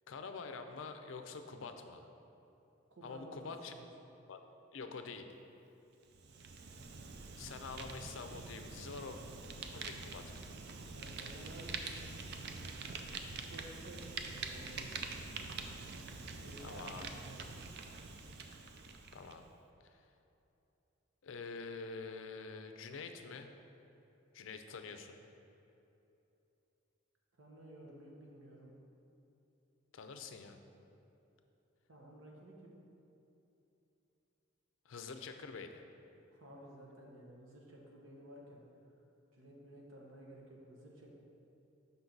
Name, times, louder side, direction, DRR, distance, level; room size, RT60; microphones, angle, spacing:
voice 1, 0.1-2.1 3.0-3.7 4.3-4.4 4.7-5.3 7.3-9.2 9.7-10.5 16.6-17.1 19.1-19.4 19.8-20.0 21.2-23.5 24.3-25.2 29.9-30.6 34.9-35.8, left 4 dB, 70° left, 7 dB, 0.4 m, -46 dB
voice 2, 2.9-3.8 10.9-11.7 13.4-15.3 16.4-17.5 27.4-28.7 31.9-32.7 36.3-38.6 39.3-41.1, right 1 dB, 75° right, -2 dB, 1.1 m, -54 dB
Fire, 6.1-19.4, right 4 dB, 55° right, 0.4 m, -45 dB
5.8 x 5.6 x 3.9 m, 2.9 s
head